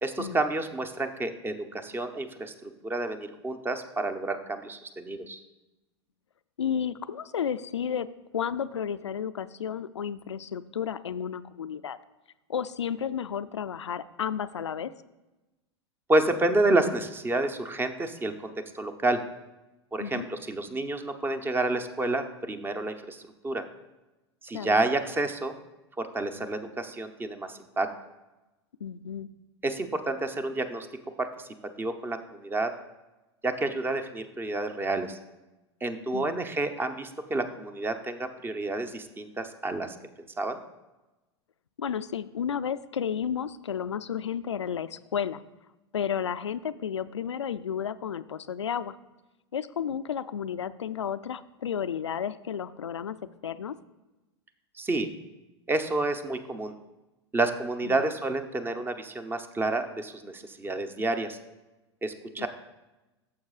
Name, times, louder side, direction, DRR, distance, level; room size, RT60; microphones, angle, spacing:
voice 1, 0.0-5.4 16.1-19.2 19.9-23.6 24.4-25.5 26.0-27.9 29.6-30.9 31.2-31.5 31.8-32.7 33.4-35.2 35.8-39.9 40.4-40.6 54.8-55.1 55.7-56.7 57.3-61.4 62.0-62.5, right 2 dB, 15° right, 9 dB, 0.7 m, -29 dB
voice 2, 6.6-8.1 8.3-12.0 12.5-14.9 20.0-20.3 24.5-24.8 28.8-29.3 36.1-36.4 41.8-45.4 45.9-49.0 49.5-53.2 53.4-53.8 57.8-58.1 62.4-62.5, left 8 dB, 90° left, 13 dB, 0.4 m, -32 dB
14.0 x 7.3 x 2.4 m, 1.1 s
hypercardioid pair, 95°, 14 cm